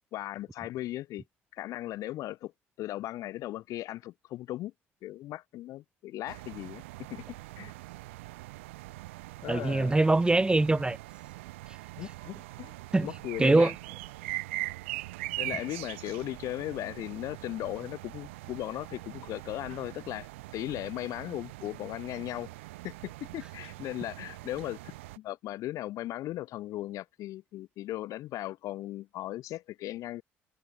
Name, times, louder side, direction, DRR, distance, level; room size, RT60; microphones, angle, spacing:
voice 1, 0.1-1.2 1.5-2.5 2.8-4.7 5.0-6.8 7.1-7.2 7.6-7.7 9.4-10.0 12.0-13.7 15.4-22.5 22.8-30.2, left 15 dB, 55° left, 0.3 m, -37 dB
sound 1, 6.3-25.2, right 20 dB, 70° right, 0.5 m, -42 dB
voice 2, 9.5-11.0 12.9-13.1 13.4-13.7, right 2 dB, 15° right, 0.5 m, -23 dB
figure-of-eight pair, 50°, 7 cm